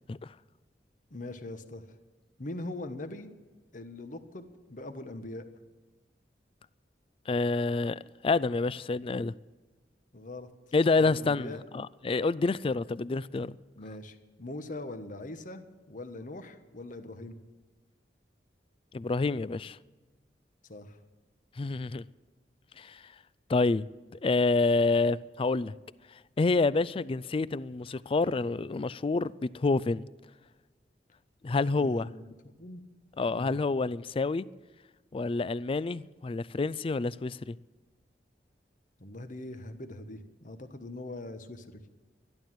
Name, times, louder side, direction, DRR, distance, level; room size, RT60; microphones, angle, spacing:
voice 1, 1.1-1.9 2.4-3.3 3.7-5.4 10.1-10.5 11.0-11.6 13.8-17.4 20.7-21.0 31.8-32.2 32.6-32.8 33.3-33.6 39.0-41.8, left 2 dB, 50° left, 1.2 m, -41 dB
voice 2, 7.3-9.3 10.7-13.6 18.9-19.8 21.6-22.0 22.8-23.0 23.5-23.9 24.1-25.7 26.4-30.0 31.4-32.1 33.2-34.5 35.1-37.6, left 3 dB, 30° left, 0.4 m, -28 dB
13.0 x 12.0 x 7.5 m
head